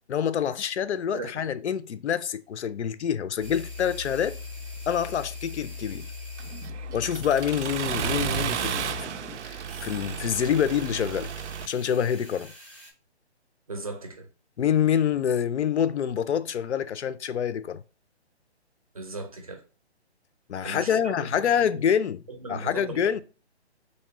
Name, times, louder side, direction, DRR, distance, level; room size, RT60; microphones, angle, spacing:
voice 1, 0.1-4.4 4.9-6.1 6.9-11.3 11.7-12.5 14.6-17.8 20.5-22.2 22.5-23.2, left 8 dB, 85° left, 0.5 m, -26 dB
sound 1, 3.4-8.4 8.7-9.0 9.7-12.9, left 4 dB, 10° left, 0.5 m, -40 dB
Accelerating revving vroom, 6.4-11.7, right 8 dB, 90° right, 0.5 m, -33 dB
voice 2, 13.7-14.3 18.9-19.6 20.6-21.9 22.3-23.2, right 3 dB, 35° right, 0.5 m, -38 dB
3.2 x 2.8 x 4.5 m
hypercardioid pair, 170°, 34 cm